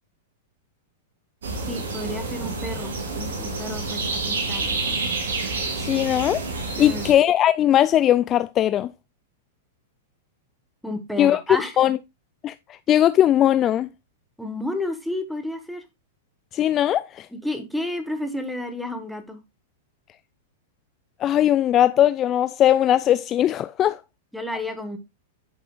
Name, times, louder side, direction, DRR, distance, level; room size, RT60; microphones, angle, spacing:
sound 1, 1.4-7.1, right 3 dB, 65° right, 2.7 m, -28 dB
voice 1, 1.7-5.0 6.7-7.1 10.8-11.8 14.4-15.8 17.3-19.4 24.3-25.0, left 1 dB, ahead, 1.5 m, -31 dB
voice 2, 5.8-6.4 6.8-8.9 11.2-11.4 11.8-12.0 12.4-12.5 12.9-13.9 16.5-17.3 21.2-24.0, left 11 dB, 30° left, 0.4 m, -19 dB
8.4 x 7.1 x 2.4 m
figure-of-eight pair, 100°, 0 cm